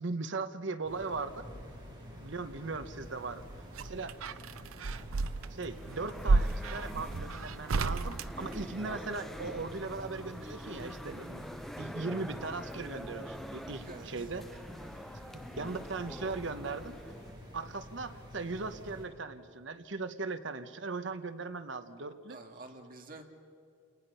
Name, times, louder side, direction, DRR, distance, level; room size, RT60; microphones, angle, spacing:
voice 1, 0.0-1.4 2.2-3.5 3.8-4.2 5.5-11.4 11.8-14.4 15.6-16.9 17.5-22.4, right 3 dB, 60° right, 10 dB, 0.9 m, -38 dB
sound 1, 0.8-19.0, equal, 20° right, 6.0 m, -49 dB
sound 2, 3.2-9.2 10.7-11.5 11.8-11.9, right 3 dB, 80° right, 0.5 m, -33 dB
sound 3, 5.7-17.3, equal, ahead, 0.5 m, -45 dB
voice 2, 13.9-14.3 22.3-23.2, right 2 dB, 40° right, 3 dB, 1.9 m, -48 dB
29.5 x 19.0 x 5.6 m, 2.5 s
head